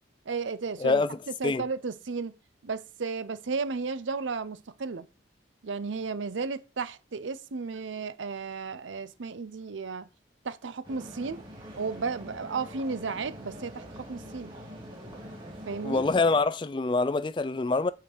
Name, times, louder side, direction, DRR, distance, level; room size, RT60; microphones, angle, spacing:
voice 1, 0.3-1.0 1.4-2.3 2.6-5.1 5.6-10.1 10.4-11.4 11.8-13.8 14.1-14.5 15.7-16.0, right 4 dB, 85° right, 0.6 m, -34 dB
voice 2, 0.8-1.7 15.8-17.9, left 3 dB, 25° left, 0.3 m, -26 dB
sound 1, 10.8-16.4, equal, 25° right, 2.7 m, -44 dB
7.6 x 4.9 x 4.6 m
head